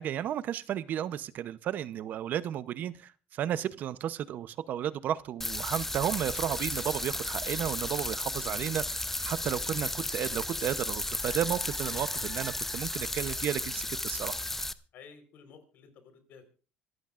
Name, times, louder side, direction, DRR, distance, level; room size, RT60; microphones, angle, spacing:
voice 1, 0.0-14.4, right 10 dB, 55° right, 15 dB, 0.7 m, -33 dB
sound 1, 5.4-14.7, left 2 dB, 10° left, 0.7 m, -34 dB
voice 2, 14.9-16.5, left 6 dB, 65° left, 8 dB, 4.2 m, -53 dB
25.5 x 14.5 x 2.5 m, 0.36 s
cardioid pair, 115°, 3 cm